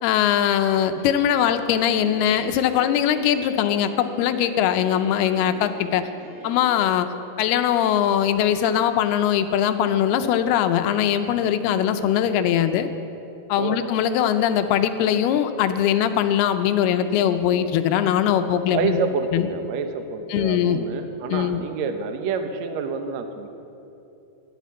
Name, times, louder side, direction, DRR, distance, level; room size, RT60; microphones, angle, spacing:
voice 1, 0.0-6.1 6.4-7.1 7.4-12.9 13.5-19.0 19.3-19.5 20.3-20.8 21.3-21.6, left 10 dB, 85° left, 8 dB, 2.6 m, -21 dB
Piano, 1.7-6.8, right 1 dB, 45° right, 3.8 m, -43 dB
voice 2, 18.5-23.5, right 5 dB, 80° right, 6 dB, 1.5 m, -28 dB
12.5 x 11.5 x 8.3 m, 2.8 s
omnidirectional pair, 4.6 m